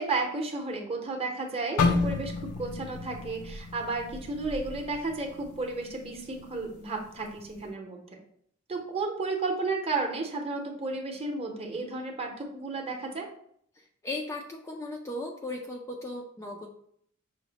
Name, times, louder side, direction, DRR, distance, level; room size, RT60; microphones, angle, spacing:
voice 1, 0.0-2.3 2.6-8.0 8.7-13.3, right 3 dB, 25° right, 1 dB, 0.7 m, -33 dB
sound 1, 1.8-5.8 6.2-6.4 7.1-7.4, left 4 dB, 85° left, 0.5 m, -31 dB
voice 2, 13.8-16.7, left 2 dB, 15° left, 0 dB, 0.3 m, -37 dB
5.8 x 2.1 x 3.9 m, 0.66 s
head